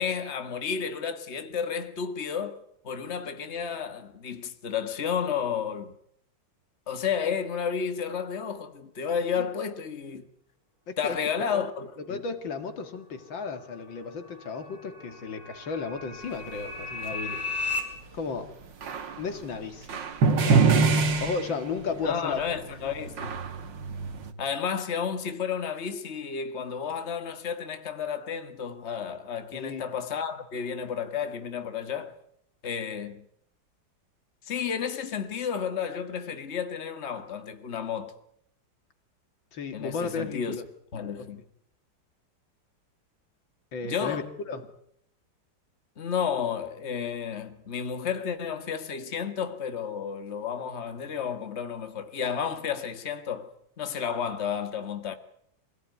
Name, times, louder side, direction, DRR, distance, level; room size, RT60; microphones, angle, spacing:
voice 1, 0.0-5.9 6.9-10.3 11.0-12.2 22.0-23.4 24.4-32.2 32.6-33.3 34.4-38.1 39.7-40.6 40.9-41.4 43.8-44.3 46.0-53.5 53.8-55.1, left 7 dB, 35° left, 1.9 m, -32 dB
voice 2, 12.1-17.5 18.1-18.5 19.2-20.0 20.4-20.8 21.2-22.4 29.5-29.8 39.5-40.6 43.7-44.6, left 5 dB, 90° left, 2.8 m, -34 dB
sound 1, 13.5-17.8, left 3 dB, 15° left, 4.9 m, -36 dB
sound 2, 18.8-19.2 19.9-22.1 22.3-24.3, right 4 dB, 70° right, 2.3 m, -24 dB
26.0 x 17.0 x 9.4 m
omnidirectional pair, 2.0 m